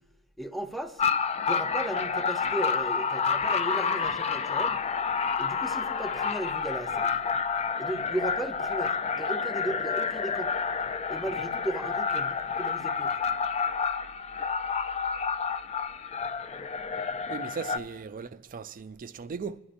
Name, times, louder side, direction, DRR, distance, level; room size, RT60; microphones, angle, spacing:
voice 1, 0.4-1.0 1.5-4.8 5.4-7.1 7.8-10.6 11.1-13.2, right 1 dB, ahead, 0.7 m, -35 dB
sound 1, 1.0-17.8, left 5 dB, 30° left, 0.4 m, -29 dB
voice 2, 17.3-19.6, right 5 dB, 40° right, 0.4 m, -38 dB
25.0 x 11.0 x 2.5 m
head